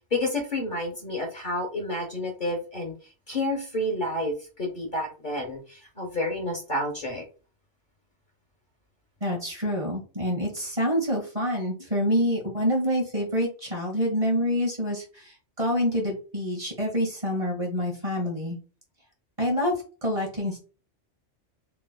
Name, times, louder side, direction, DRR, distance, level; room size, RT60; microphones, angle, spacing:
voice 1, 0.1-2.9 3.3-7.2, left 1 dB, 45° left, 2 dB, 1.2 m, -30 dB
voice 2, 9.2-18.6 19.4-19.7 20.0-20.6, equal, 30° right, -1 dB, 1.9 m, -27 dB
4.6 x 3.8 x 2.3 m, 0.35 s
omnidirectional pair, 1.2 m